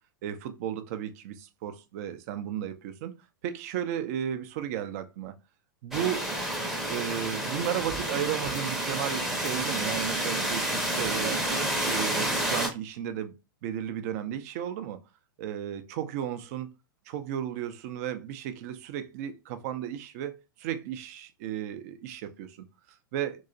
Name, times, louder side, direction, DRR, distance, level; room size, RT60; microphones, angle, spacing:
voice 1, 0.2-3.2 3.4-5.4 5.8-6.3 6.9-11.5 11.8-13.4 13.6-15.0 15.4-16.7 17.1-23.4, right 10 dB, 45° right, 0.5 m, -34 dB
sound 1, 5.9-12.7, right 1 dB, ahead, 0.6 m, -29 dB
3.0 x 2.8 x 2.5 m
figure-of-eight pair, 95°, 11 cm